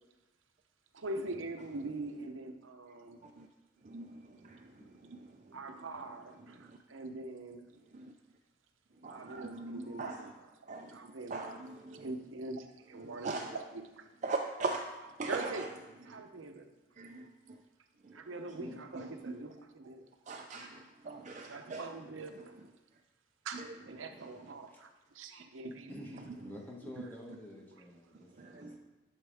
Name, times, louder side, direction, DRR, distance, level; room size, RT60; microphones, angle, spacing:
voice 1, 0.9-3.2 5.5-7.7 9.0-11.6 12.0-14.1 15.3-15.7 16.0-16.7 18.1-20.1 21.4-22.5 23.4-25.9, right 2 dB, 80° right, 6 dB, 0.8 m, -43 dB
voice 2, 3.8-4.7 5.0-5.6 6.6-6.8 7.9-8.1 9.0-10.2 10.7-11.0 11.3-12.1 13.0-13.5 14.2-14.8 15.2-15.7 16.1-16.2 17.0-17.6 18.0-18.2 18.9-19.0 20.3-21.9 23.5-23.7 26.3-26.4 28.4-28.8, right 3 dB, 40° right, 2 dB, 0.5 m, -40 dB
voice 3, 25.9-28.8, left 1 dB, 10° left, -2 dB, 1.3 m, -48 dB
11.5 x 6.3 x 3.5 m, 1.1 s
head